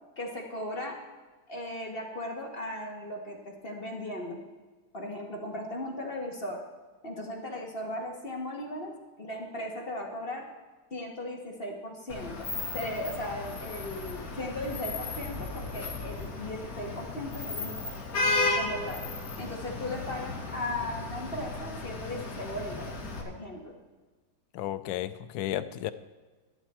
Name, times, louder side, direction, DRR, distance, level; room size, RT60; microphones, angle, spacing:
voice 1, 0.2-0.9 1.5-4.4 4.9-6.6 7.0-8.9 9.2-10.4 10.9-12.5 12.7-17.8 18.5-19.0 19.4-22.9 23.2-23.7, left 1 dB, 30° left, 0 dB, 1.7 m, -37 dB
Vehicle horn car horn honking / Traffic noise roadway noise, 12.1-23.2, left 3 dB, 50° left, 2.1 m, -34 dB
voice 2, 24.5-25.9, left 13 dB, 80° left, 13 dB, 1.3 m, -33 dB
12.0 x 11.5 x 4.4 m, 1.3 s
omnidirectional pair, 2.1 m